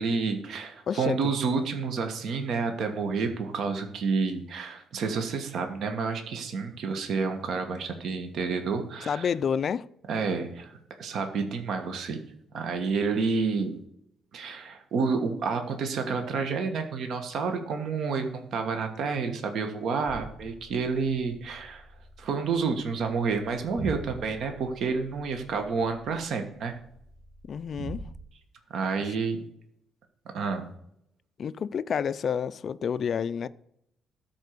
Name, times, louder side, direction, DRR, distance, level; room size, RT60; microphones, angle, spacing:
voice 1, 0.0-9.3 10.1-12.2 12.5-13.8 14.3-21.8 22.2-26.8 28.7-29.4 30.3-30.7, right 4 dB, 55° right, 1.4 m, -29 dB
voice 2, 0.9-1.3 9.1-9.9 27.5-28.1 29.0-29.1 31.4-33.5, left 7 dB, 40° left, 0.4 m, -29 dB
sound 1, 20.1-28.2, right 2 dB, 25° right, 1.1 m, -44 dB
13.0 x 4.5 x 6.7 m
cardioid pair, 170°, 0 cm